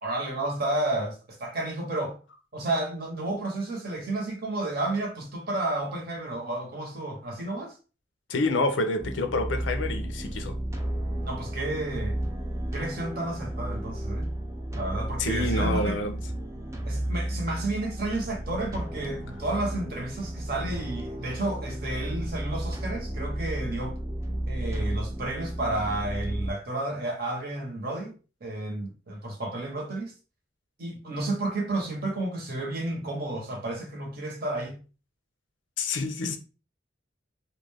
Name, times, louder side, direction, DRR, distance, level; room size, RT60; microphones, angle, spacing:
voice 1, 0.0-2.2 2.5-7.8 11.2-12.2 12.7-14.3 14.7-16.0 16.8-24.0 24.5-28.1 28.4-30.1 30.8-34.8, right 2 dB, 55° right, 0.9 m, -31 dB
voice 2, 8.3-10.6 15.2-16.2 35.8-36.4, left 2 dB, 85° left, 0.5 m, -28 dB
sound 1, 9.0-26.5, right 1 dB, 15° right, 0.4 m, -33 dB
2.4 x 2.2 x 3.3 m
head